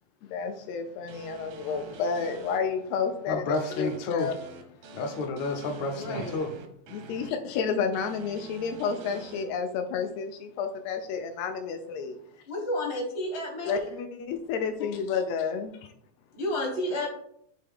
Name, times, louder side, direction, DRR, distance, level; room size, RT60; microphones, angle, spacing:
voice 1, 0.2-3.4 3.8-4.3 6.9-12.1 13.6-15.8, left 6 dB, 90° left, 6 dB, 1.5 m, -31 dB
sound 1, 1.1-2.6 3.5-7.3 7.9-9.4, right 3 dB, 75° right, 1.3 m, -46 dB
voice 2, 3.3-4.3 4.9-6.5, left 3 dB, 75° left, 4 dB, 1.9 m, -30 dB
voice 3, 5.9-6.4 12.5-13.8 16.4-17.1, left 1 dB, 45° left, 0 dB, 0.7 m, -31 dB
9.7 x 3.3 x 3.5 m, 0.68 s
omnidirectional pair, 3.6 m